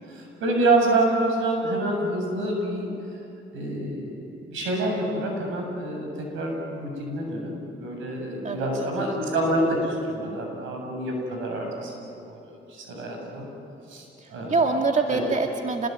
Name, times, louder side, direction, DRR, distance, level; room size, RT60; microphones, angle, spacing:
voice 1, 0.1-2.9 3.5-7.5 7.8-13.5 13.9-14.6 15.1-15.2, right 2 dB, 85° right, 1 dB, 7.7 m, -27 dB
voice 2, 8.4-9.0 14.2-15.9, right 3 dB, 40° right, 2 dB, 2.1 m, -25 dB
27.5 x 21.5 x 9.6 m, 2.8 s
cardioid pair, 90°, 20 cm